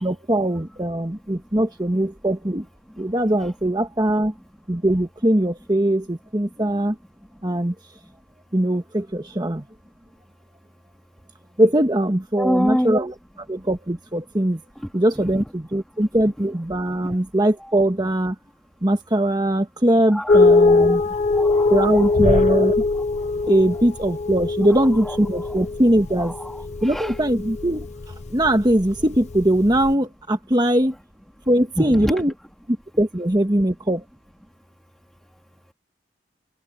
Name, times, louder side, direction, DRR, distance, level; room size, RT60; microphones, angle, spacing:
voice 1, 0.0-2.7 3.0-4.3 4.7-7.0 7.4-7.7 8.5-9.6 11.6-13.1 13.5-14.6 14.9-18.3 18.8-21.0 21.7-22.8 23.5-26.3 26.8-27.9 28.3-30.9 31.5-32.3 32.7-34.0, right 1 dB, 25° right, 1.5 m, -21 dB
voice 2, 12.4-13.0 15.1-15.3 17.6-17.8 20.1-21.0 21.3-22.3 24.7-25.7 26.2-27.1 31.8-32.1, equal, ahead, 3.0 m, -27 dB
sound 1, 20.3-29.9, left 3 dB, 35° left, 0.5 m, -21 dB
head